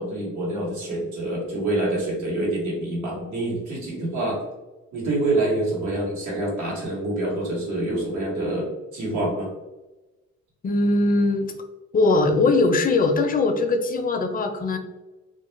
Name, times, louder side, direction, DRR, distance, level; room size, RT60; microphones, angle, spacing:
voice 1, 0.0-4.4 4.9-9.5, right 2 dB, 80° right, -3 dB, 1.1 m, -26 dB
voice 2, 10.6-11.5 11.9-14.8, left 3 dB, 30° left, 5 dB, 0.4 m, -20 dB
2.3 x 2.0 x 3.0 m, 1.1 s
cardioid pair, 90°, 30 cm